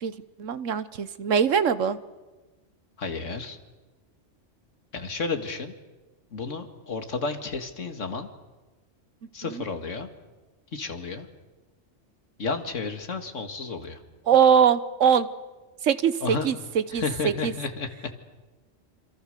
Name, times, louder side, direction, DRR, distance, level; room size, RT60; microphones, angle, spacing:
voice 1, 0.4-2.0 9.4-9.6 14.3-15.3 15.8-17.5, right 7 dB, 85° right, 14 dB, 1.4 m, -22 dB
voice 2, 3.0-3.6 4.9-5.7 6.3-8.3 9.3-10.1 10.7-11.3 12.4-14.0 16.2-16.5 16.9-18.1, left 4 dB, 80° left, 7 dB, 2.3 m, -32 dB
27.0 x 26.5 x 6.7 m, 1.2 s
omnidirectional pair, 1.3 m